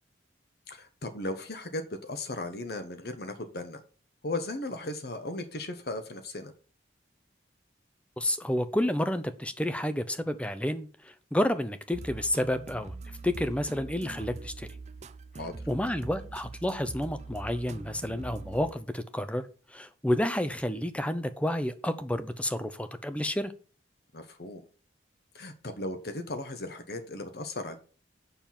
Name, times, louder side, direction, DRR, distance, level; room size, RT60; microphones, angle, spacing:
voice 1, 0.7-3.8 4.2-6.5 15.4-15.5 24.1-24.6 25.3-27.8, left 2 dB, 55° left, 1.0 m, -36 dB
voice 2, 8.2-13.0 13.2-14.7 15.7-19.4 19.7-23.5, left 1 dB, 5° left, 0.6 m, -30 dB
sound 1, 11.9-18.7, right 3 dB, 35° right, 0.5 m, -43 dB
7.0 x 5.9 x 7.2 m
head